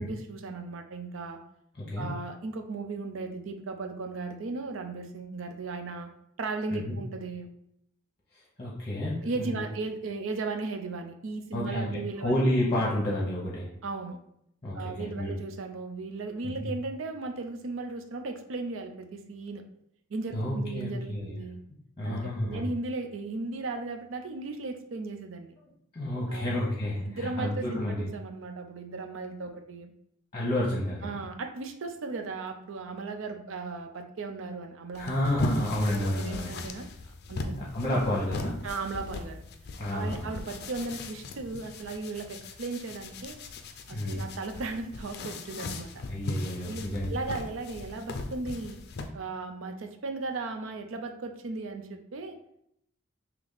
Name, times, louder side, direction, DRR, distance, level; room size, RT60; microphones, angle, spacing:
voice 1, 0.0-1.4 2.0-6.1 6.4-7.5 9.2-12.3 13.8-14.2 14.7-19.6 20.1-21.6 22.0-25.5 26.3-26.5 27.1-29.9 31.0-35.1 35.9-36.9 37.3-37.6 38.6-39.4 39.9-43.4 43.9-45.9 46.6-48.8 49.1-52.4, right 3 dB, 65° right, 6 dB, 0.5 m, -36 dB
voice 2, 1.8-2.1 6.7-6.9 8.6-9.6 11.5-11.9 12.2-13.7 14.6-15.3 16.4-16.7 20.3-21.4 22.0-22.6 25.9-28.0 30.3-31.1 35.0-36.6 37.6-38.6 39.8-40.4 43.9-44.2 46.1-47.1, left 1 dB, 30° left, -4 dB, 0.9 m, -30 dB
sound 1, 34.9-49.1, left 2 dB, 50° left, 0.4 m, -38 dB
3.3 x 2.9 x 4.0 m, 0.74 s
head